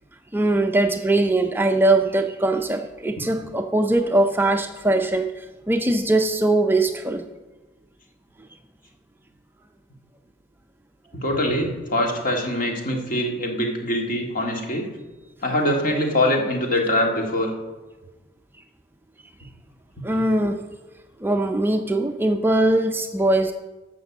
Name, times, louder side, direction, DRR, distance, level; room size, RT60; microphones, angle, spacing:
voice 1, 0.3-7.3 20.0-20.6 21.2-23.5, right 2 dB, 10° right, 5 dB, 0.4 m, -21 dB
voice 2, 11.2-14.9 15.4-17.5, left 1 dB, 45° left, 1 dB, 1.9 m, -23 dB
12.0 x 6.0 x 7.1 m, 1.2 s
head